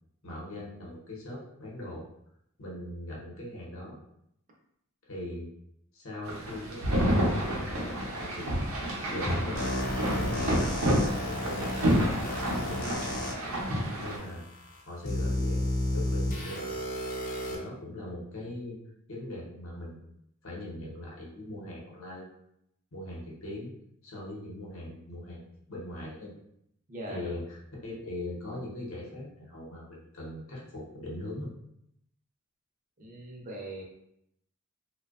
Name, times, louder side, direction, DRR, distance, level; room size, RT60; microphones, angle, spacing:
voice 1, 0.2-2.1 2.6-4.0 5.1-5.5 5.9-8.5 9.1-9.7 9.9-12.2 12.4-13.3 14.0-15.7 15.9-16.7 17.5-18.8 19.1-20.2 20.4-22.3 22.9-23.7 24.0-26.3 27.1-27.6 27.8-31.5, left 1 dB, 70° left, -3 dB, 0.8 m, -40 dB
sound 1, 6.3-14.2, equal, 85° right, 0.6 m, -29 dB
sound 2, 9.6-13.3 14.1-14.2 15.0-17.6, left 1 dB, 40° left, 0.5 m, -32 dB
voice 2, 26.9-27.3 33.0-33.8, right 1 dB, 40° right, -1 dB, 0.5 m, -40 dB
2.6 x 2.1 x 2.4 m, 0.76 s
head